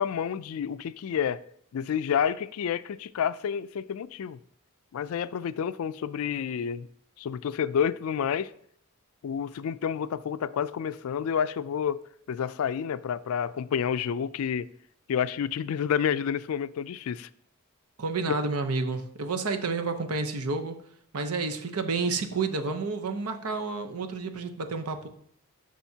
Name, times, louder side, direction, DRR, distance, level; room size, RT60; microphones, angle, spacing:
voice 1, 0.0-1.4 1.7-4.4 4.9-6.9 7.2-8.5 9.2-14.7 15.1-17.3 18.3-18.4, left 8 dB, 70° left, 0.3 m, -29 dB
voice 2, 18.0-20.8 21.1-25.1, right 4 dB, 85° right, 0.8 m, -30 dB
11.5 x 6.2 x 2.8 m
head